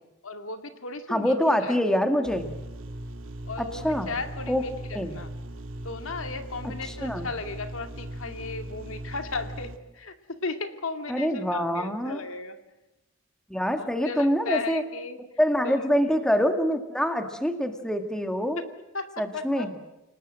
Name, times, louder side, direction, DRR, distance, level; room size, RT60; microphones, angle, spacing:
voice 1, 0.2-1.8 3.4-5.3 5.8-12.6 13.7-15.2 15.6-15.9 18.9-19.7, left 3 dB, 75° left, 8 dB, 2.2 m, -35 dB
voice 2, 1.1-2.5 3.6-4.1 4.5-4.6 4.9-5.1 7.0-7.3 11.1-12.2 13.5-14.8 15.4-18.6 19.2-19.7, equal, 5° left, 7 dB, 1.9 m, -25 dB
sound 1, 2.2-9.8, right 1 dB, 70° right, 2.1 m, -39 dB
29.5 x 19.5 x 7.7 m, 0.96 s
head